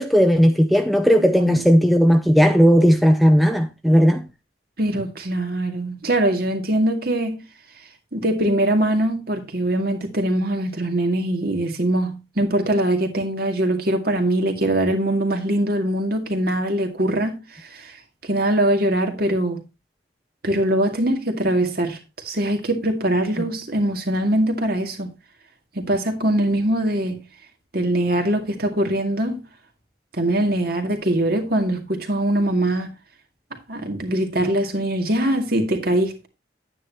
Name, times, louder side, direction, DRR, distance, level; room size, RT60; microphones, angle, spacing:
voice 1, 0.0-4.2, equal, ahead, 0.6 m, -16 dB
voice 2, 1.3-1.6 4.8-7.4 8.1-17.9 18.2-19.6 20.4-25.1 25.7-27.2 27.7-29.4 30.1-32.9 33.7-36.3, right 1 dB, 50° right, 2.2 m, -22 dB
10.5 x 9.5 x 2.8 m
head